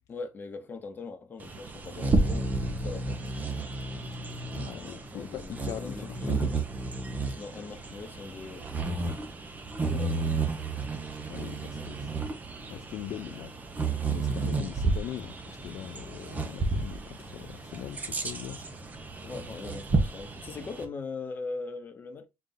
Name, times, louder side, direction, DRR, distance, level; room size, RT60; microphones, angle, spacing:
voice 1, 0.1-3.2 4.7-6.5 7.4-9.2 9.9-10.3 11.7-11.9 19.2-22.3, left 4 dB, 35° left, 0.9 m, -41 dB
Bird vocalization bird call bird song, 1.4-20.9, right 3 dB, 25° right, 0.7 m, -32 dB
voice 2, 4.5-6.6 9.9-10.3 11.3-12.1 12.7-13.5 14.1-18.6, left 11 dB, 70° left, 0.3 m, -41 dB
4.1 x 2.4 x 3.8 m
cardioid pair, 135°, 6 cm